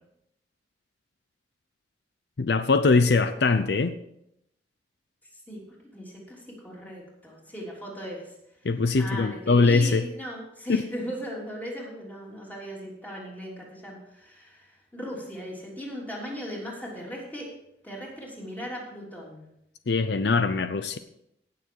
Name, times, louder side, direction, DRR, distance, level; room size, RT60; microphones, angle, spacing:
voice 1, 2.4-3.9 8.6-10.0 10.7-10.8 19.9-21.0, left 3 dB, 70° left, 10 dB, 0.6 m, -22 dB
voice 2, 5.9-8.4 9.0-17.5 17.8-19.4, equal, 10° left, -4 dB, 3.2 m, -38 dB
17.5 x 6.8 x 4.7 m, 0.80 s
head